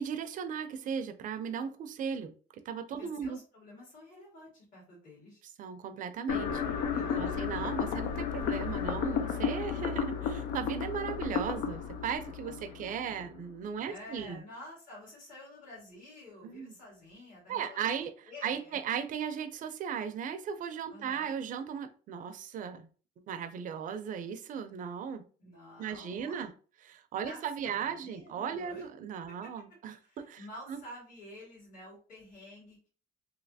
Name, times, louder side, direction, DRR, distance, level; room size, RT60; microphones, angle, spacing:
voice 1, 0.0-2.3 2.7-3.4 5.6-14.4 16.4-16.7 17.5-18.1 18.4-22.9 23.3-25.2 25.8-26.5 26.8-30.0 30.3-30.8, right 7 dB, 50° right, 10 dB, 0.5 m, -37 dB
voice 2, 3.0-5.4 6.9-7.4 12.2-13.1 13.8-18.8 20.9-21.3 25.4-26.5 27.2-28.9 29.4-29.5 30.0-32.9, left 1 dB, 50° left, -5 dB, 1.8 m, -50 dB
sound 1, 6.3-13.3, left 7 dB, 85° left, 0.5 m, -33 dB
3.2 x 2.8 x 2.7 m, 0.39 s
cardioid pair, 110°, 17 cm